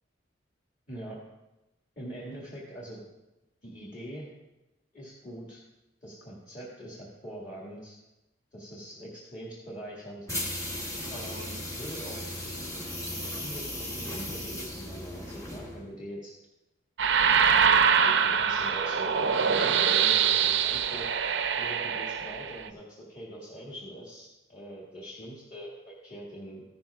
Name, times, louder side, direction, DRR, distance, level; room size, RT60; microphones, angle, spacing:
voice 1, 0.9-1.2 2.0-3.0 3.6-4.3 4.9-5.6 6.0-8.0 8.5-10.3 11.1-12.2 13.4-16.3 17.6-21.1 21.6-26.6, right 1 dB, 40° left, -5 dB, 1.8 m, -43 dB
sound 1, 10.3-15.9, left 1 dB, 15° left, 1.0 m, -36 dB
sound 2, 17.0-22.7, right 7 dB, 70° right, 0.5 m, -24 dB
14.5 x 12.0 x 2.3 m, 0.97 s
head